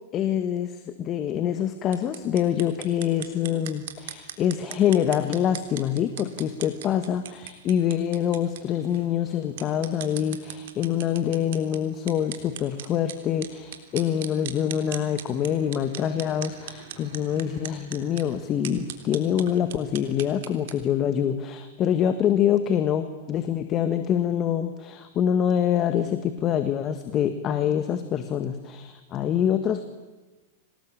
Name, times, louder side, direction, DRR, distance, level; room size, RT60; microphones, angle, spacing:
voice 1, 0.1-29.8, left 9 dB, 30° left, 9 dB, 1.7 m, -25 dB
sound 1, 1.8-20.8, right 10 dB, 70° right, 3.5 m, -41 dB
25.5 x 19.5 x 9.0 m, 1.2 s
hypercardioid pair, 130°, 0 cm